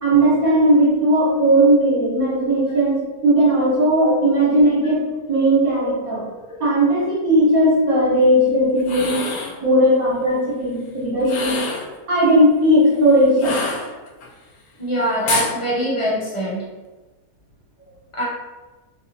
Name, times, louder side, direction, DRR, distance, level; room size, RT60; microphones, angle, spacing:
voice 1, 0.0-5.0 5.3-6.2 6.6-9.2 9.6-11.6 12.1-13.6, right 1 dB, 65° right, -9 dB, 1.7 m, -17 dB
sound 1, 8.8-9.6 11.2-11.9 13.4-14.3 15.3-15.6, left 4 dB, 75° left, 1.0 m, -26 dB
voice 2, 14.8-16.6 18.2-18.3, right 1 dB, 35° left, -6 dB, 0.5 m, -23 dB
3.2 x 2.7 x 2.7 m, 1.2 s
omnidirectional pair, 1.6 m